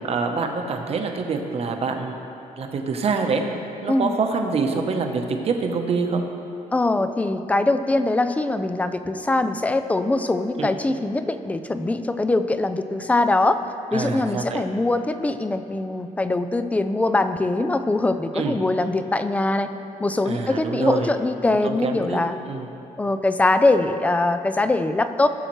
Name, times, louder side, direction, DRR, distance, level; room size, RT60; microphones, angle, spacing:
voice 1, 0.0-2.2 2.6-3.4 3.8-6.2 10.6-10.7 13.9-14.6 18.3-18.6 20.2-21.1 21.5-22.7, right 4 dB, 50° right, 4 dB, 0.9 m, -26 dB
voice 2, 6.7-13.6 13.9-19.7 20.0-22.4 23.0-25.3, left 2 dB, 10° left, 10 dB, 0.3 m, -22 dB
17.0 x 6.4 x 3.2 m, 2.9 s
cardioid pair, 140°, 14 cm